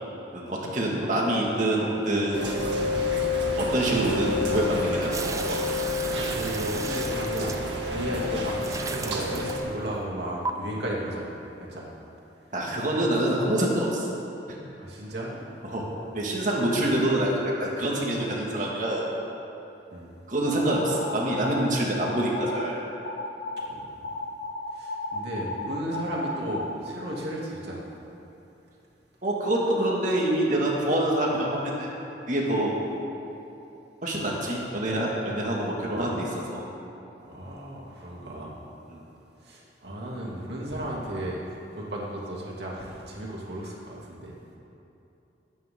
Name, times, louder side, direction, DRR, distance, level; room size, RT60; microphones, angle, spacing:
voice 1, 0.3-2.5 3.6-5.6 8.1-8.2 12.5-14.1 15.6-15.9 16.1-19.1 20.3-22.8 29.2-31.9 32.3-32.8 34.0-36.6 38.9-39.0, right 1 dB, 45° right, -3 dB, 2.0 m, -26 dB
Rain, 2.3-9.6, left 2 dB, 85° right, 2.1 m, -29 dB
sound 1, 5.1-8.1 8.6-9.9 10.4-10.5, right 4 dB, 20° right, 0.4 m, -36 dB
voice 2, 5.9-7.6 7.8-11.3 11.6-11.9 14.8-15.4 19.9-20.2 23.7-24.1 24.7-27.9 37.2-38.5 39.4-44.4, right 1 dB, 70° right, -4 dB, 2.7 m, -35 dB
sound 2, 20.7-21.6 22.0-22.7 23.0-23.7 24.0-26.8, left 2 dB, 90° left, 1.3 m, -34 dB
22.0 x 9.3 x 3.7 m, 2.9 s
head